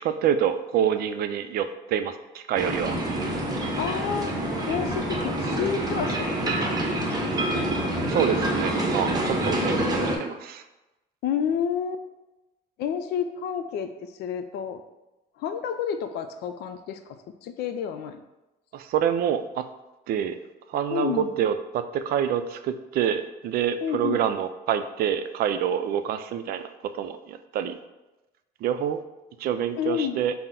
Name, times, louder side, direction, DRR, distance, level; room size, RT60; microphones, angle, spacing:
voice 1, 0.0-3.0 8.1-10.6 18.7-19.6 20.1-20.4 20.7-26.6 26.9-27.7 28.6-29.0 29.4-30.3, right 9 dB, 65° right, 9 dB, 0.4 m, -27 dB
sound 1, 2.6-10.2, right 1 dB, 25° right, 0.8 m, -26 dB
voice 2, 3.8-4.4 4.7-7.2 11.2-12.0 12.8-14.8 15.4-18.2 20.9-21.3 23.8-24.2 29.8-30.2, left 8 dB, 75° left, 8 dB, 0.4 m, -30 dB
5.6 x 2.0 x 3.7 m, 1.0 s
cardioid pair, 110°, 17 cm